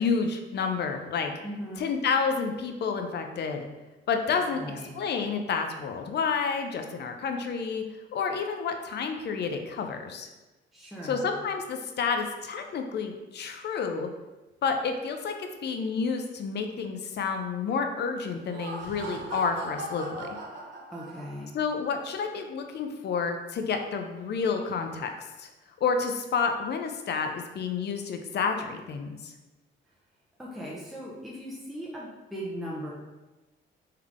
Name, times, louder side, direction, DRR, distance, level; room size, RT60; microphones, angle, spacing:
voice 1, 0.0-1.3 1.8-3.7 4.1-4.6 4.9-7.8 8.1-10.3 11.0-14.1 14.6-20.4 21.5-25.1 25.4-25.5 25.8-29.3, left 5 dB, 60° left, 5 dB, 0.6 m, -29 dB
voice 2, 1.4-1.9 4.3-4.9 10.7-11.3 20.9-21.5 30.4-32.9, equal, ahead, -6 dB, 0.8 m, -38 dB
Laughter, 18.3-21.6, right 2 dB, 70° right, 0.9 m, -39 dB
3.7 x 3.3 x 3.6 m, 1.1 s
cardioid pair, 90°, 20 cm